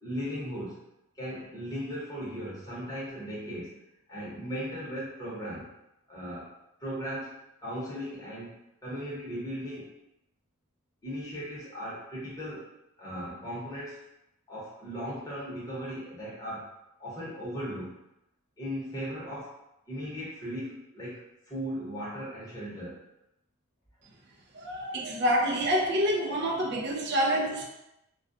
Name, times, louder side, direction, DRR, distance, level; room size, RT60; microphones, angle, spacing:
voice 1, 0.0-0.8 1.2-5.7 6.1-6.5 6.8-7.3 7.6-8.6 8.8-9.9 11.0-12.7 13.0-14.0 14.5-16.7 17.0-18.0 18.6-19.5 19.9-23.0, equal, 15° left, -9 dB, 0.9 m, -37 dB
voice 2, 24.5-27.7, equal, 50° right, 0 dB, 0.4 m, -27 dB
2.3 x 2.2 x 2.5 m, 0.87 s
head